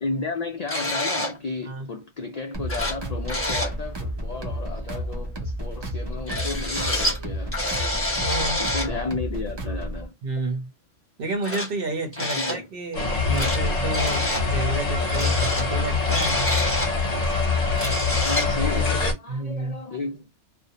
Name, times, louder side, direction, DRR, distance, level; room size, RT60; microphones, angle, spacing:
voice 1, 0.0-7.8 8.6-10.2 12.2-12.7 18.2-20.3, left 3 dB, 65° left, 0.4 m, -33 dB
sound 1, 0.7-1.4 2.3-2.4 2.7-3.0 3.3-3.7 6.3-7.2 7.5-8.9 10.4-10.5 11.4-11.7 12.1-12.6 12.9-13.6 13.9-14.4 15.1-17.0 17.4-17.5 17.7-18.5, left 1 dB, 10° left, 0.9 m, -27 dB
sound 2, 2.5-10.0, equal, 30° right, 0.5 m, -32 dB
voice 2, 8.1-8.7 10.2-10.7 11.2-16.4 19.3-19.8, right 2 dB, 55° right, 0.9 m, -30 dB
sound 3, 12.9-19.1, left 4 dB, 40° left, 0.7 m, -24 dB
2.5 x 2.0 x 2.7 m
omnidirectional pair, 1.2 m